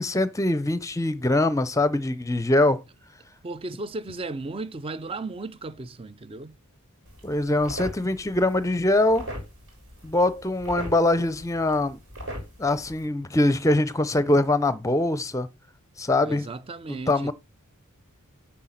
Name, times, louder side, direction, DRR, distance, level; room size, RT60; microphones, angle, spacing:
voice 1, 0.0-2.8 7.2-9.3 10.0-12.0 12.6-15.5 16.0-16.4 16.9-17.3, left 2 dB, 15° left, 0.6 m, -23 dB
voice 2, 3.4-6.6 16.2-17.3, right 3 dB, 25° right, 0.5 m, -35 dB
sound 1, 7.1-13.1, equal, 70° right, 3.8 m, -40 dB
9.1 x 4.4 x 5.8 m
head